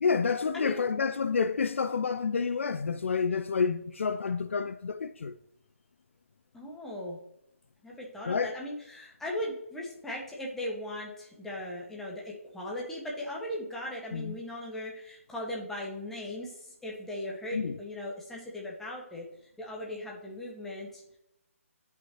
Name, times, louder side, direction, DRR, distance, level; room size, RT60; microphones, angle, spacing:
voice 1, 0.0-5.3 8.2-8.6 14.1-14.4 17.5-17.8, left 5 dB, 60° left, 0.4 m, -29 dB
voice 2, 0.5-0.8 6.5-7.2 7.8-19.2 19.6-21.2, left 1 dB, 5° left, 1.6 m, -38 dB
9.9 x 5.7 x 3.0 m
figure-of-eight pair, 145°, 8 cm